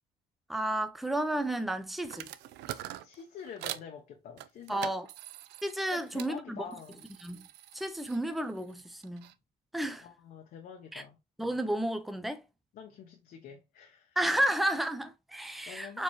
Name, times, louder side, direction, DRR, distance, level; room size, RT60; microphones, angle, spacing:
voice 1, 0.5-2.3 4.7-5.1 5.6-6.6 7.2-7.4 7.7-9.3 9.7-10.1 10.9-11.0 11.4-12.4 14.2-16.0, right 1 dB, ahead, 0.5 m, -32 dB
sound 1, 2.0-3.9 4.4-6.3 6.7-9.4, right 13 dB, 85° right, 0.4 m, -44 dB
voice 2, 3.0-5.0 5.9-7.0 10.0-11.2 12.7-14.2 15.7-16.0, left 7 dB, 60° left, 0.7 m, -47 dB
4.4 x 3.0 x 2.9 m
cardioid pair, 110°, 17 cm